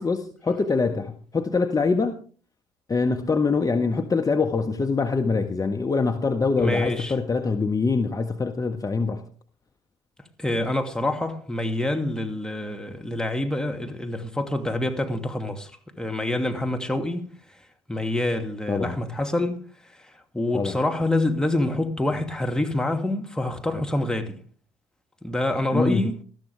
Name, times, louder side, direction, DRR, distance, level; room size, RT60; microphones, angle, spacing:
voice 1, 0.0-2.2 2.9-9.2 18.7-19.0 20.5-20.8 25.7-26.1, left 4 dB, 25° left, 1.5 m, -24 dB
voice 2, 6.6-7.1 10.4-15.7 16.0-17.3 17.9-19.6 20.0-24.4 25.2-26.2, left 1 dB, 5° left, 2.5 m, -26 dB
20.0 x 13.5 x 3.5 m
figure-of-eight pair, 50°, 14 cm